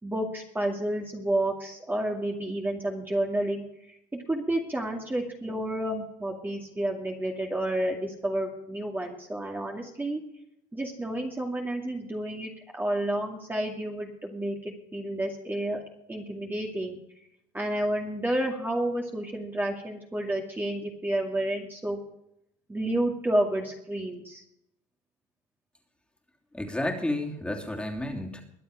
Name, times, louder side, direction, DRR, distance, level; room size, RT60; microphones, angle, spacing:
voice 1, 0.0-3.9 4.3-10.2 10.7-15.8 16.1-17.0 17.5-22.0 22.7-24.4, right 1 dB, 15° right, 0 dB, 2.3 m, -30 dB
voice 2, 26.5-28.4, left 1 dB, 5° left, 1 dB, 3.0 m, -31 dB
22.5 x 7.8 x 5.0 m, 0.79 s
supercardioid pair, 100°, 15 cm